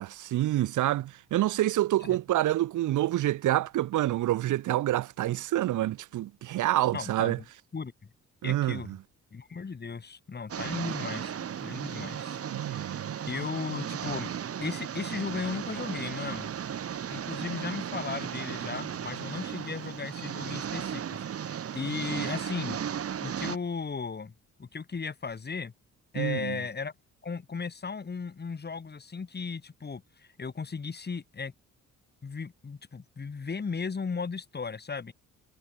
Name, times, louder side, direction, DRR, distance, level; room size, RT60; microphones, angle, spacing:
voice 1, 0.0-7.4 8.4-9.0 12.5-13.1 26.1-26.6, right 14 dB, 80° right, 2.0 m, -27 dB
voice 2, 6.9-7.3 7.7-7.9 8.4-8.9 9.3-14.3 14.6-16.5 17.1-22.8 23.2-24.3 24.6-25.7 26.1-26.9 27.2-31.5 32.2-35.1, left 5 dB, 35° left, 5.1 m, -36 dB
sound 1, 10.5-23.6, right 8 dB, 50° right, 1.7 m, -35 dB
cardioid pair, 90°, 30 cm